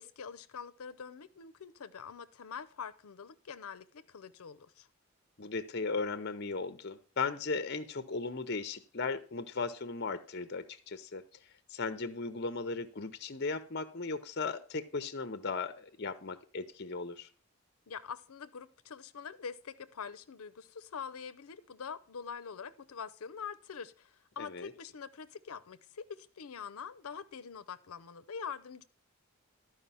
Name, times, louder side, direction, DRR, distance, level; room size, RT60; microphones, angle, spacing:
voice 1, 0.0-4.9 17.9-28.8, left 6 dB, 85° left, 11 dB, 0.6 m, -45 dB
voice 2, 5.4-11.2 11.7-17.3 24.4-24.7, left 4 dB, 50° left, 12 dB, 0.7 m, -37 dB
12.5 x 4.9 x 5.5 m, 0.42 s
head